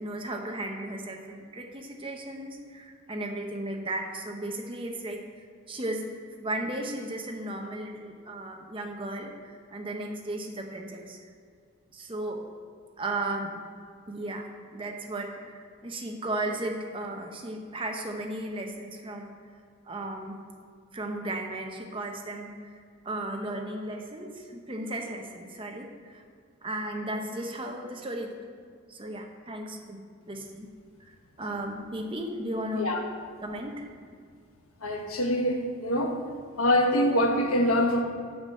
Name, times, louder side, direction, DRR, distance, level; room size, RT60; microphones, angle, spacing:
voice 1, 0.0-5.2 5.7-6.1 6.4-11.2 11.9-12.5 13.0-13.6 14.1-19.3 19.9-20.4 20.9-26.2 26.6-28.3 28.9-30.7 31.1-32.9 33.4-33.9, right 1 dB, 25° right, 2 dB, 0.9 m, -35 dB
voice 2, 34.8-36.2 36.6-38.0, left 1 dB, 85° left, 3 dB, 1.3 m, -24 dB
7.8 x 6.0 x 7.8 m, 2.2 s
head